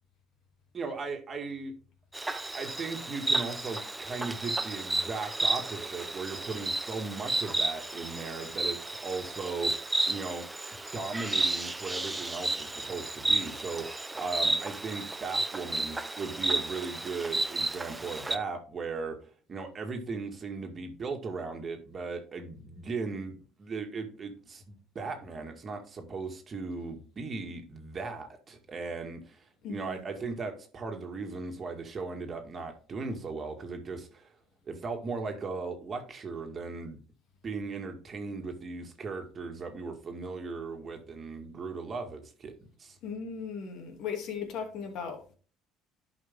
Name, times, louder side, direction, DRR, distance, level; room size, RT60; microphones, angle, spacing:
voice 1, 0.7-1.7 2.5-10.5 10.9-19.2 19.5-34.3 34.7-37.0 37.4-43.0, right 4 dB, 35° right, 1.9 m, -37 dB
Insect, 2.1-18.4, right 2 dB, 10° right, 0.7 m, -32 dB
voice 2, 29.6-30.0 43.0-45.3, left 6 dB, 65° left, 2.6 m, -37 dB
11.0 x 5.2 x 3.6 m
supercardioid pair, 105°, 0 cm